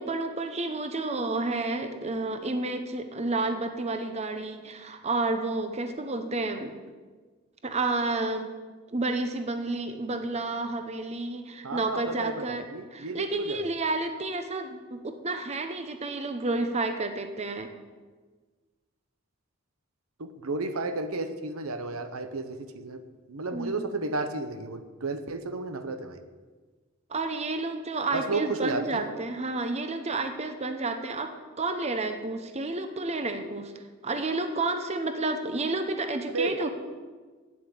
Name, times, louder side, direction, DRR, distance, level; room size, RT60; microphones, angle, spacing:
voice 1, 0.0-6.7 7.6-8.5 8.9-12.6 12.9-17.7 23.5-23.8 27.1-31.3 31.6-33.7 34.0-36.7, right 2 dB, 30° right, 7 dB, 0.8 m, -30 dB
voice 2, 11.6-13.7 20.2-23.0 23.3-26.2 28.1-29.1 36.3-36.7, right 3 dB, 90° right, 9 dB, 0.9 m, -32 dB
8.5 x 8.4 x 8.6 m, 1.4 s
head